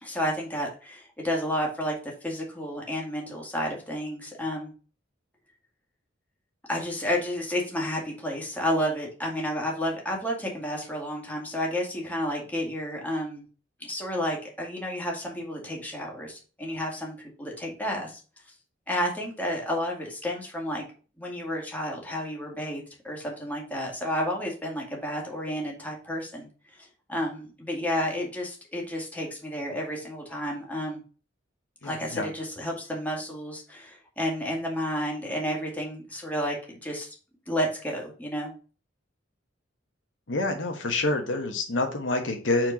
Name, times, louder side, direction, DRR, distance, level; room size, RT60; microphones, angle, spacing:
voice 1, 0.0-4.7 6.7-13.5 13.8-18.2 18.9-20.9 21.2-26.5 26.8-31.0 31.8-37.1 37.5-38.5, equal, 10° left, -1 dB, 1.9 m, -31 dB
voice 2, 31.8-32.3 40.3-42.7, left 2 dB, 80° left, 4 dB, 1.3 m, -27 dB
4.6 x 4.4 x 5.7 m, 0.36 s
head